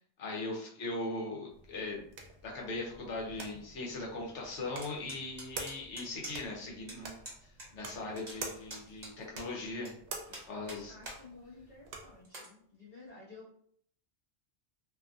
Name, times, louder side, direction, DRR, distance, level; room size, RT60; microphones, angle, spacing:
voice 1, 0.2-2.0 2.4-9.9 10.3-10.9, left 2 dB, 85° left, -2 dB, 1.1 m, -39 dB
sound 1, 1.5-12.2, right 3 dB, 75° right, 0.9 m, -48 dB
sound 2, 4.8-6.6 6.9-7.0 7.2-7.7 7.9-9.9 10.3-11.2 11.6-11.7 12.2-12.5, right 1 dB, 40° right, 1.1 m, -46 dB
voice 2, 10.9-13.5, left 3 dB, 45° left, -7 dB, 0.8 m, -53 dB
2.7 x 2.3 x 2.5 m, 0.63 s
omnidirectional pair, 1.2 m